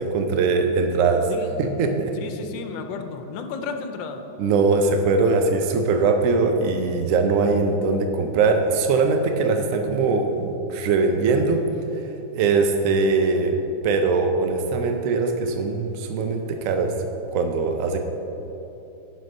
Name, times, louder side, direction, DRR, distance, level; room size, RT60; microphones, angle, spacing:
voice 1, 0.0-1.3 1.6-2.1 4.4-11.6 12.3-13.6 13.8-16.9 17.3-18.0, right 4 dB, 80° right, 4 dB, 0.7 m, -21 dB
voice 2, 2.1-4.2, left 5 dB, 80° left, 6 dB, 1.3 m, -33 dB
11.0 x 4.3 x 5.2 m, 3.0 s
omnidirectional pair, 2.0 m